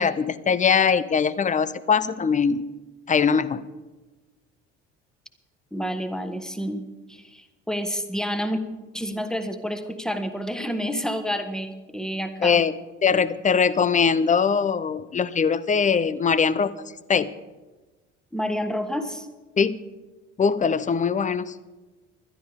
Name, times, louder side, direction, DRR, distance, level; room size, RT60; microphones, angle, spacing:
voice 1, 0.0-2.7 3.1-3.6 12.4-12.7 13.0-16.7 17.1-17.3 19.6-19.8 20.4-21.5, left 6 dB, 20° left, 17 dB, 0.6 m, -21 dB
voice 2, 5.7-8.6 8.9-12.6 18.3-19.3, equal, ahead, 8 dB, 1.4 m, -29 dB
20.5 x 12.0 x 3.6 m, 1.2 s
figure-of-eight pair, 55°, 37 cm